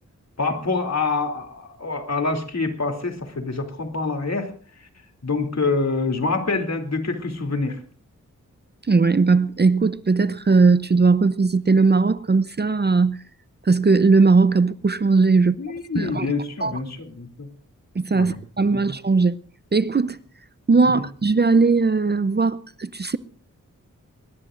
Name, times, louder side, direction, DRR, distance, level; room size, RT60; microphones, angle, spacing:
voice 1, 0.4-4.5 4.8-4.9 5.2-7.8 15.4-17.5 18.1-18.4 18.7-18.8 20.8-21.0, left 3 dB, 55° left, 2.9 m, -26 dB
voice 2, 8.9-13.2 13.7-15.6 16.0-16.3 16.6-16.8 18.0-19.4 19.7-20.2 20.7-23.2, right 4 dB, 30° right, 0.7 m, -18 dB
22.0 x 19.5 x 2.5 m
cardioid pair, 60°, 32 cm